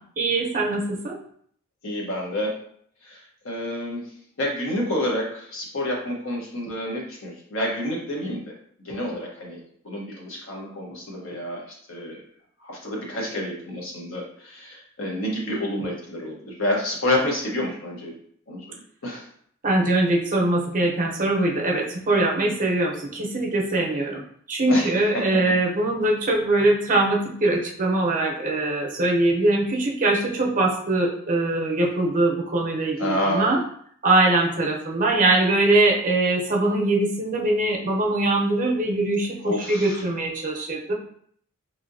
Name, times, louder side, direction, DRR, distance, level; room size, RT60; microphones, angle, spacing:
voice 1, 0.2-1.2 19.6-24.2 24.5-33.6 34.0-40.9, right 2 dB, 40° right, 0 dB, 0.7 m, -22 dB
voice 2, 1.8-2.5 3.0-4.1 4.4-8.4 8.8-9.6 9.8-11.6 11.9-12.2 12.6-18.1 18.5-18.6 19.0-19.2 24.7-25.6 33.0-33.5 39.4-40.0, left 1 dB, 65° left, -2 dB, 1.0 m, -28 dB
3.4 x 2.7 x 2.6 m, 0.63 s
head